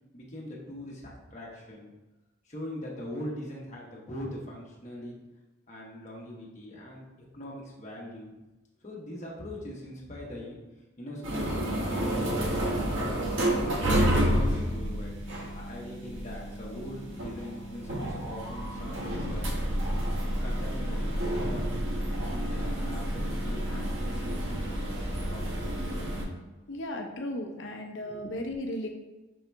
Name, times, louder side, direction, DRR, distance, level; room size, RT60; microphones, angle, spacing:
voice 1, 0.1-1.9 2.4-5.2 5.7-7.0 7.3-8.3 8.8-10.6 11.0-13.2 13.6-15.2 15.5-19.5 20.4-21.8 22.3-24.6 25.3-25.5 26.2-26.3 28.0-28.3, left 1 dB, 35° left, -4 dB, 1.1 m, -41 dB
sound 1, 11.2-26.3, equal, 85° right, 0.9 m, -30 dB
voice 2, 26.7-28.9, left 1 dB, 75° left, 2 dB, 0.6 m, -35 dB
5.4 x 2.9 x 3.4 m, 1.1 s
head